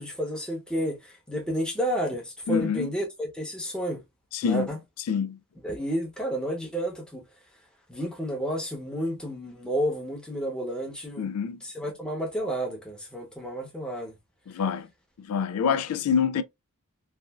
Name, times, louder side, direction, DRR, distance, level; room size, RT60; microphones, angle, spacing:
voice 1, 0.0-4.0 4.4-4.8 5.6-7.2 7.9-11.3 11.6-14.1, equal, 5° left, 0.8 m, -31 dB
voice 2, 2.5-2.9 4.3-4.7 5.1-5.4 11.2-11.6 14.5-14.9 15.2-16.4, left 6 dB, 80° left, 0.3 m, -26 dB
3.2 x 2.4 x 2.2 m
head